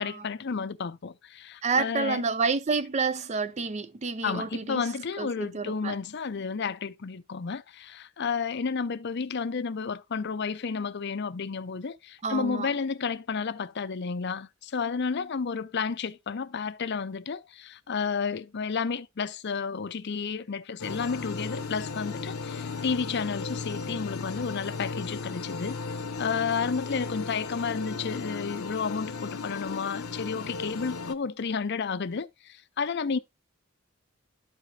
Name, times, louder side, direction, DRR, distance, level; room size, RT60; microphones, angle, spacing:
voice 1, 0.0-2.2 4.2-25.8 26.2-33.2, left 5 dB, 50° left, 0.5 m, -31 dB
voice 2, 1.6-4.9 5.2-6.0 12.2-12.7, right 4 dB, 30° right, 0.5 m, -29 dB
sound 1, 20.8-31.1, left 4 dB, 85° left, 0.8 m, -35 dB
12.0 x 5.0 x 2.7 m
head